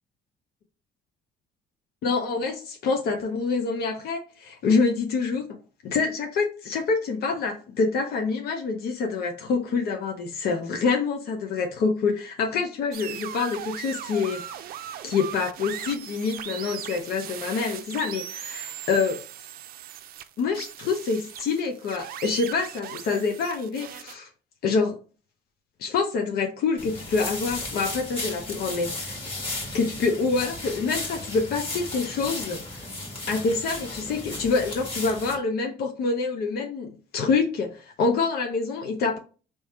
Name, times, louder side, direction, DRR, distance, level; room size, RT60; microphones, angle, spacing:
voice 1, 2.0-5.6 5.8-14.4 15.0-19.2 20.4-24.3 24.6-25.0 25.8-29.2 29.7-32.6 33.3-39.2, left 4 dB, 70° left, 0.9 m, -26 dB
sound 1, 12.9-24.2, right 11 dB, 60° right, 0.5 m, -39 dB
sound 2, 26.8-35.4, left 2 dB, 30° left, 1.7 m, -35 dB
3.5 x 3.1 x 4.3 m
cardioid pair, 110°, 17 cm